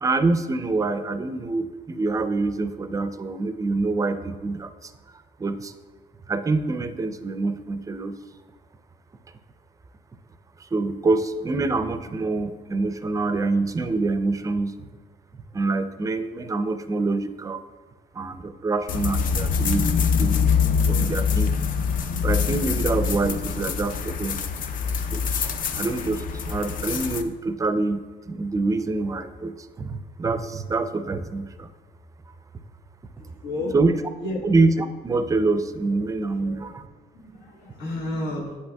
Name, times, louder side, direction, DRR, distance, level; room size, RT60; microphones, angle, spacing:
voice 1, 0.0-4.9 5.4-5.7 6.3-8.2 10.6-14.8 15.5-17.6 18.1-20.4 20.9-21.7 22.2-24.4 25.1-25.5 25.7-28.0 28.3-31.7 33.7-34.0 34.4-36.9, right 3 dB, 20° right, 11 dB, 0.4 m, -26 dB
sound 1, 18.9-27.2, left 6 dB, 55° left, 0.5 m, -24 dB
voice 2, 33.2-33.8 34.2-34.4 36.4-36.6 37.1-38.6, left 1 dB, 85° left, -3 dB, 1.2 m, -31 dB
8.3 x 8.1 x 2.3 m, 1.4 s
cardioid pair, 110°, 17 cm